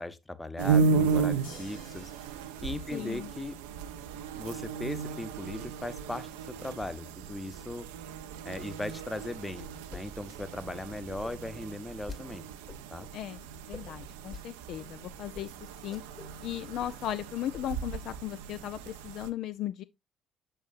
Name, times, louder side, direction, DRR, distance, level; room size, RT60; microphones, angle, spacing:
voice 1, 0.0-2.1 2.6-3.5 4.3-6.3 6.6-7.9 8.4-12.4 12.9-13.1, left 2 dB, 15° left, 0.8 m, -38 dB
sound 1, 0.6-19.3, right 5 dB, 70° right, 0.5 m, -34 dB
sound 2, 1.4-3.9 5.6-5.7, left 3 dB, 75° left, 2.1 m, -53 dB
voice 2, 2.9-3.3 13.1-15.5 15.8-16.0 16.4-19.8, left 12 dB, 55° left, 0.3 m, -37 dB
sound 3, 9.6-10.0 10.3-12.2 12.7-13.1 13.7-14.4 14.8-14.9 15.3-15.4 15.8-16.4 16.6-17.2 17.5-17.9, left 4 dB, 35° left, 1.7 m, -46 dB
7.1 x 6.4 x 2.5 m
figure-of-eight pair, 45°, 0 cm